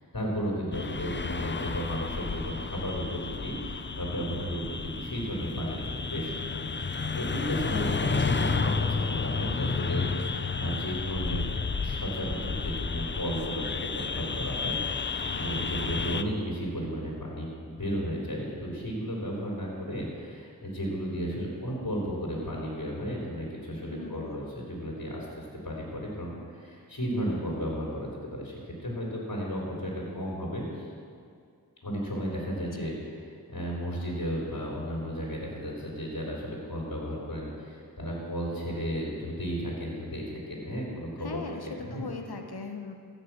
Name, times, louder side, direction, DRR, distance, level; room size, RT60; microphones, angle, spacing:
voice 1, 0.0-11.4 11.8-30.9 31.8-33.0 33.5-41.4 41.8-42.0, equal, 60° left, -4 dB, 3.6 m, -34 dB
sound 1, 0.7-16.2, left 4 dB, 30° left, 0.6 m, -31 dB
voice 2, 7.7-8.1 23.9-24.4 32.7-32.9 41.2-42.9, left 4 dB, 80° left, 5 dB, 1.2 m, -39 dB
15.5 x 6.7 x 7.4 m, 2.2 s
wide cardioid pair, 40°, 38 cm